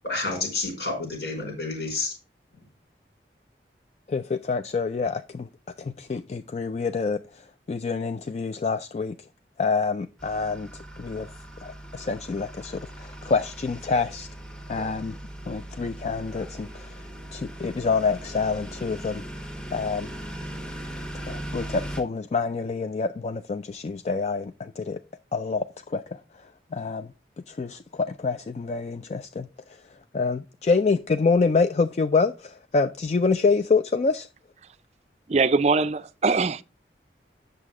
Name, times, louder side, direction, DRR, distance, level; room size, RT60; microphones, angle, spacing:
voice 1, 0.0-2.1, left 3 dB, 75° left, 5.1 m, -29 dB
voice 2, 4.1-5.5 5.8-9.2 9.6-11.3 11.6-14.3 14.7-15.2 15.5-17.0 17.3-19.2 19.7-20.1 21.3-25.0 25.3-27.1 27.5-29.8 30.1-34.3, left 4 dB, 40° left, 0.3 m, -27 dB
sound 1, 10.2-22.0, right 1 dB, 5° left, 1.1 m, -39 dB
voice 3, 35.3-36.6, right 4 dB, 40° right, 0.4 m, -22 dB
8.2 x 6.7 x 3.6 m
head